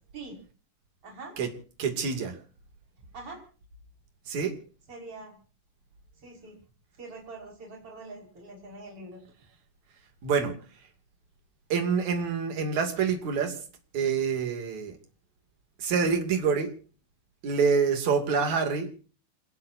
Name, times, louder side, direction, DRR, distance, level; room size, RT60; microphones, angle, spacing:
voice 1, 1.0-1.4 3.1-3.4 4.9-5.4 6.2-6.6 7.0-9.2, right 3 dB, 40° right, 0 dB, 6.8 m, -44 dB
voice 2, 1.8-2.4 4.3-4.6 10.2-10.5 11.7-13.6 13.9-14.9 15.8-16.7 17.4-18.9, right 5 dB, 60° right, 6 dB, 3.9 m, -26 dB
27.5 x 19.0 x 2.7 m, 0.39 s
omnidirectional pair, 3.8 m